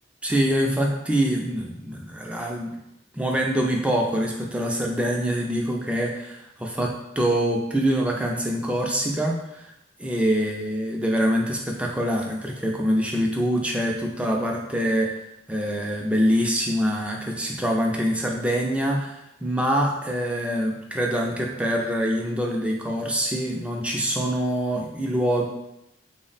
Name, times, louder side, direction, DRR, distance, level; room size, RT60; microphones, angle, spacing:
voice 1, 0.2-2.8 3.1-9.7 10.0-15.1 15.5-25.5, equal, 5° right, 0 dB, 0.3 m, -25 dB
3.5 x 2.1 x 3.9 m, 0.86 s
head